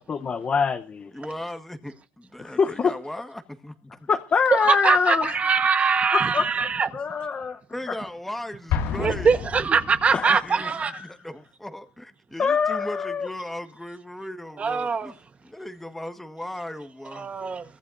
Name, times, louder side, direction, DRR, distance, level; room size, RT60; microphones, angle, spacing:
voice 1, 0.1-1.1 2.5-2.9 4.1-5.4 6.1-6.5 6.9-7.6 10.1-10.4 10.9-11.1 12.4-13.3, left 5 dB, 30° left, 0.9 m, -24 dB
voice 2, 1.1-4.1 7.7-9.3 10.3-15.1 15.4-17.3, left 1 dB, 5° left, 1.5 m, -37 dB
voice 3, 4.6-6.9 9.0-11.0 14.6-15.1 17.1-17.6, right 5 dB, 30° right, 1.2 m, -22 dB
Explosion, 8.7-10.5, left 7 dB, 80° left, 2.2 m, -30 dB
23.5 x 14.5 x 2.6 m
cardioid pair, 120°, 5 cm